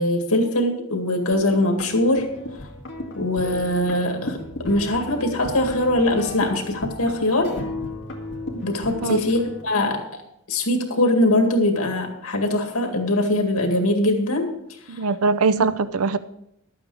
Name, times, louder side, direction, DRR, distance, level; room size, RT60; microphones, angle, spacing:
voice 1, 0.0-2.3 3.2-7.5 8.5-10.0 10.5-14.5, left 1 dB, 90° left, 4 dB, 2.0 m, -22 dB
sound 1, 1.3-9.6, left 1 dB, 60° left, 2.1 m, -34 dB
voice 2, 14.9-16.2, right 4 dB, 85° right, 14 dB, 0.6 m, -21 dB
12.0 x 8.8 x 4.8 m, 0.77 s
head